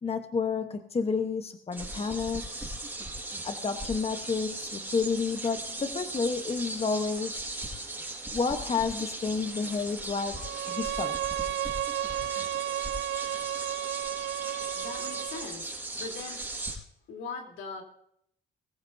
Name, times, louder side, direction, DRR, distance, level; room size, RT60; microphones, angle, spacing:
voice 1, 0.0-2.8 3.4-7.4 8.3-11.2, left 5 dB, 30° left, 7 dB, 1.1 m, -30 dB
sound 1, 1.7-16.7, right 2 dB, 10° right, 5.4 m, -38 dB
Bowed string instrument, 10.4-15.5, right 13 dB, 75° right, 0.5 m, -33 dB
voice 2, 14.7-16.4 17.1-17.8, left 4 dB, 85° left, 2 dB, 3.4 m, -40 dB
22.0 x 15.0 x 2.7 m, 0.70 s
cardioid pair, 90°, 20 cm